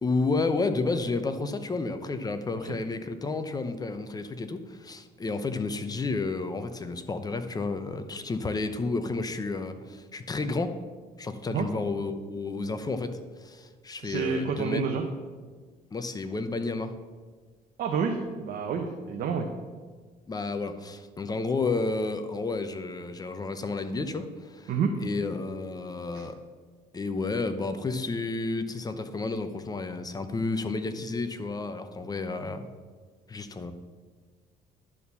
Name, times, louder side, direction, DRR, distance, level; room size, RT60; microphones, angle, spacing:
voice 1, 0.0-10.8 11.2-14.8 15.9-16.9 20.3-24.7 25.0-26.4 26.9-32.6 33.3-33.7, left 3 dB, 20° left, 9 dB, 0.7 m, -31 dB
voice 2, 14.0-15.0 17.8-19.5 24.7-24.9 26.1-26.2, right 6 dB, 60° right, 3 dB, 0.9 m, -29 dB
11.0 x 4.2 x 7.0 m, 1.5 s
cardioid pair, 110°, 17 cm